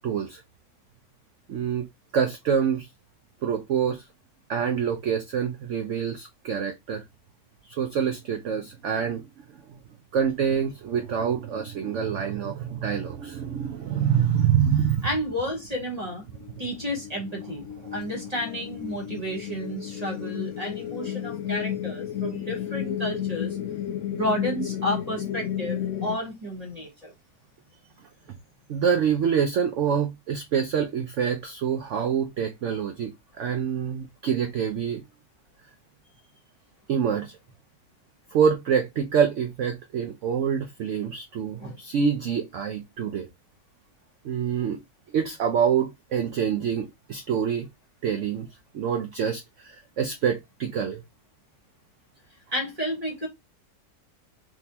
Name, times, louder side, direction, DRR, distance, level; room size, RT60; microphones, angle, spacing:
voice 1, 0.0-0.4 1.5-1.9 2.1-2.9 3.4-4.0 4.5-7.0 7.8-9.2 10.1-15.1 17.8-17.9 28.7-35.0 36.9-37.4 38.3-43.3 44.2-44.8 45.1-47.7 48.0-48.5 48.7-51.0, right 7 dB, 70° right, 0.7 m, -26 dB
voice 2, 15.0-16.2 16.6-23.6 24.1-27.1 41.6-41.8 52.5-53.3, equal, 25° right, 1.3 m, -31 dB
sound 1, 15.9-26.2, left 10 dB, 70° left, 0.8 m, -33 dB
3.6 x 2.9 x 2.8 m
omnidirectional pair, 1.8 m